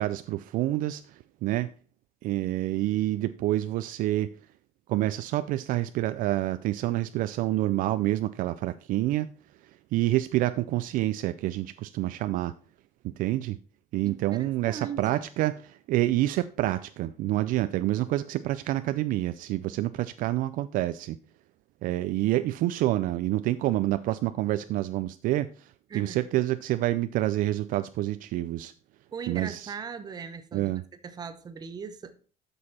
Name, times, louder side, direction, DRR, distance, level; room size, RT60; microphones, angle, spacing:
voice 1, 0.0-1.7 2.2-4.3 4.9-9.3 9.9-12.5 13.2-13.6 13.9-21.2 21.8-28.7 29.3-29.7 30.5-30.8, right 15 dB, 60° right, 0.4 m, -28 dB
voice 2, 14.0-15.3 25.9-26.2 29.1-30.7 31.0-32.1, right 6 dB, 25° right, 0.8 m, -39 dB
7.6 x 6.4 x 4.2 m
cardioid pair, 150°, 16 cm